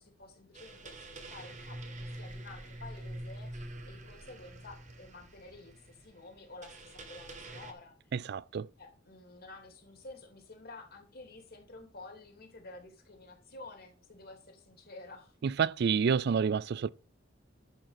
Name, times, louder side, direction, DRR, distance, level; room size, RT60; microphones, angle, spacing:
voice 1, 0.0-8.0 8.8-15.3, left 2 dB, 55° left, 3.0 m, -51 dB
sound 1, 0.5-7.7, right 1 dB, 40° right, 1.6 m, -46 dB
voice 2, 8.3-8.7 15.4-16.9, right 6 dB, 55° right, 0.4 m, -28 dB
11.5 x 5.2 x 5.8 m
head